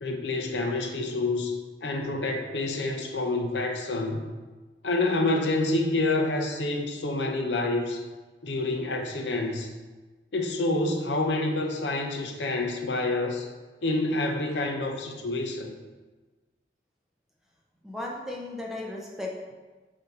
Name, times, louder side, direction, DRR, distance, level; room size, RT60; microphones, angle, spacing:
voice 1, 0.0-1.5 1.8-4.3 4.8-8.0 8.4-9.7 10.3-13.5 13.8-15.8, left 2 dB, 80° left, 3 dB, 0.7 m, -28 dB
voice 2, 17.8-19.5, left 2 dB, 5° right, -2 dB, 0.8 m, -36 dB
6.8 x 2.8 x 5.3 m, 1.3 s
head